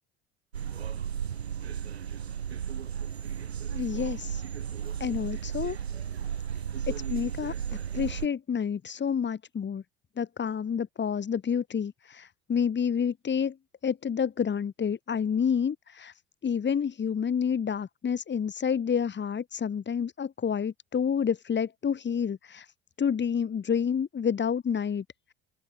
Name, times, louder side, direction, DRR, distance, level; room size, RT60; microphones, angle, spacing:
sound 1, 0.5-8.3, right 8 dB, 90° right, 7.9 m, -34 dB
voice 1, 3.7-4.4 5.0-5.8 6.9-7.5 7.9-9.8 10.2-13.6 13.8-16.1 16.4-22.7 23.0-25.0, left 7 dB, 35° left, 8.0 m, -29 dB
open air
hypercardioid pair, 70°, 31 cm